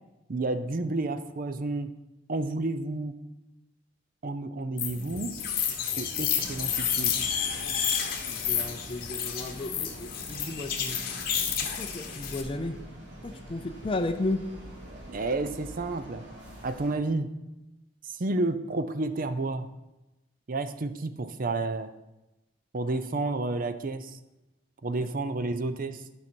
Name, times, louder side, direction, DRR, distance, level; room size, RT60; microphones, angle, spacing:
voice 1, 0.3-1.9 2.3-3.1 4.2-5.4 6.0-7.2 15.1-16.2 16.6-17.3 18.1-19.7 20.5-21.9 22.7-24.2 24.8-26.0, right 2 dB, 50° right, 11 dB, 0.6 m, -30 dB
sound 1, 4.8-12.4, left 8 dB, 50° left, 1.1 m, -30 dB
sound 2, 6.4-16.9, right 1 dB, 75° right, 3.0 m, -46 dB
voice 2, 8.3-11.0 11.6-12.8 13.2-14.4, left 2 dB, 30° left, 7 dB, 0.5 m, -34 dB
12.5 x 5.6 x 4.5 m, 1.0 s
head